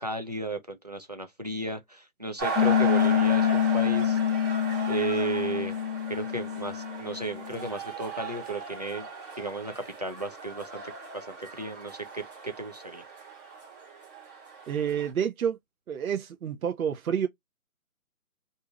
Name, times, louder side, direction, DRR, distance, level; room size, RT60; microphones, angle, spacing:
voice 1, 0.0-4.2 4.9-5.8 6.1-9.1 9.4-10.8 11.1-13.0, right 2 dB, 30° right, 0.4 m, -34 dB
sound 1, 2.4-15.1, right 4 dB, 15° right, 0.9 m, -37 dB
Piano, 2.6-7.7, left 9 dB, 60° left, 0.5 m, -26 dB
voice 2, 14.7-15.6 15.9-17.3, right 8 dB, 75° right, 0.6 m, -28 dB
2.6 x 2.4 x 2.8 m
hypercardioid pair, 155°, 42 cm